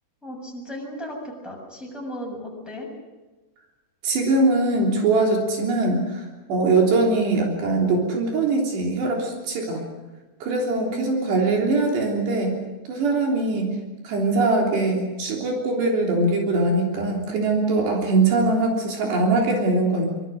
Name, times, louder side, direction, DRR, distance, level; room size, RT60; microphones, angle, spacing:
voice 1, 0.2-2.9 10.9-11.4, left 1 dB, ahead, -1 dB, 6.4 m, -35 dB
voice 2, 4.0-9.8 10.4-12.5 12.9-13.8 14.0-20.1, right 2 dB, 75° right, 0 dB, 5.6 m, -22 dB
26.0 x 22.0 x 6.5 m, 1.2 s
omnidirectional pair, 4.9 m